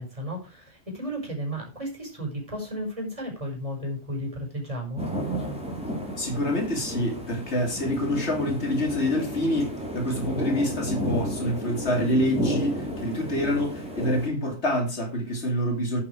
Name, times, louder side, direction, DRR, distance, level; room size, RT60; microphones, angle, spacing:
voice 1, 0.0-5.0, equal, 30° right, 5.5 m, -33 dB
sound 1, 5.0-14.3, equal, 5° right, 3.9 m, -32 dB
voice 2, 6.2-16.0, left 1 dB, 80° left, 3.1 m, -26 dB
10.0 x 8.3 x 4.8 m
omnidirectional pair, 1.1 m